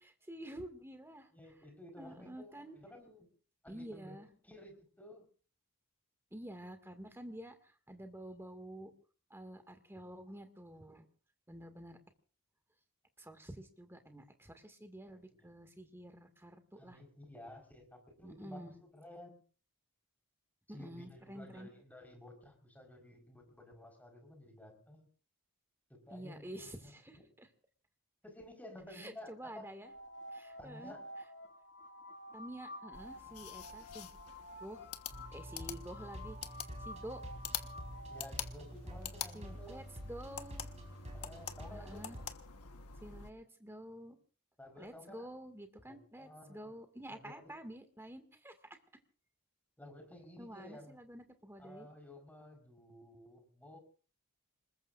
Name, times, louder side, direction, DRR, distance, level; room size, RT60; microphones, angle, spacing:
voice 1, 0.0-1.3 2.0-2.8 3.7-4.3 6.3-8.9 9.3-11.1 11.5-12.0 13.2-17.0 18.2-18.7 20.7-21.7 26.1-27.5 28.9-29.9 30.3-30.9 32.3-34.1 34.6-34.9 35.3-36.4 36.8-37.2 39.3-40.7 41.7-42.2 43.0-44.2 44.8-48.6 50.4-51.9, right 1 dB, 10° right, 6 dB, 2.0 m, -49 dB
voice 2, 1.3-3.3 3.6-5.3 15.1-15.5 16.8-19.4 20.7-25.1 25.9-27.0 28.2-29.7 30.6-31.1 38.1-39.8 41.1-42.2 44.6-45.3 45.9-46.8 47.1-47.5 49.8-51.0 51.6-53.8, left 1 dB, 5° left, 3 dB, 4.5 m, -53 dB
sound 1, 29.8-38.3, left 1 dB, 55° left, 2.4 m, -50 dB
sound 2, 32.9-43.3, left 9 dB, 80° left, 1.3 m, -47 dB
sound 3, 35.1-42.3, equal, 30° right, 4.5 m, -48 dB
26.5 x 21.0 x 2.5 m, 0.40 s
head